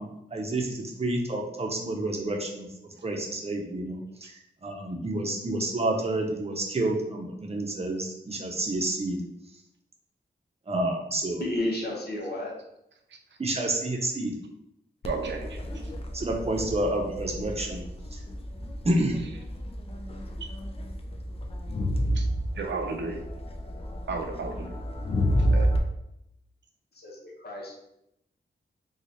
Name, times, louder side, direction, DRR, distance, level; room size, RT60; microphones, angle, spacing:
voice 1, 0.0-2.7 3.0-4.3 4.6-9.2 10.7-11.4 13.4-14.3 16.1-17.8 18.1-18.2 18.8-19.2, right 1 dB, 35° right, 0 dB, 0.7 m, -29 dB
voice 2, 11.4-12.5 26.9-27.7, left 1 dB, 55° left, -2 dB, 1.0 m, -32 dB
Crowd, 15.0-25.8, equal, 30° left, 0.4 m, -30 dB
voice 3, 15.0-15.6 22.2-22.3 22.6-23.2 24.1-24.7 25.5-25.7, right 4 dB, 75° right, 3 dB, 0.6 m, -32 dB
3.0 x 2.4 x 4.0 m, 0.81 s
wide cardioid pair, 100°, 19 cm